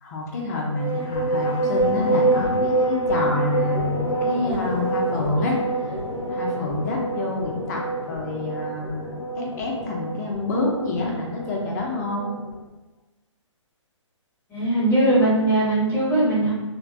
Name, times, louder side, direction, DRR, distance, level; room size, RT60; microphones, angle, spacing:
voice 1, 0.0-6.0 6.3-12.3, left 2 dB, 35° left, -1 dB, 0.5 m, -27 dB
sound 1, 0.7-12.6, right 2 dB, 85° left, 0.6 m, -26 dB
voice 2, 14.5-16.5, right 1 dB, 10° left, -9 dB, 0.8 m, -20 dB
2.4 x 2.1 x 2.5 m, 1.1 s
figure-of-eight pair, 135°, 16 cm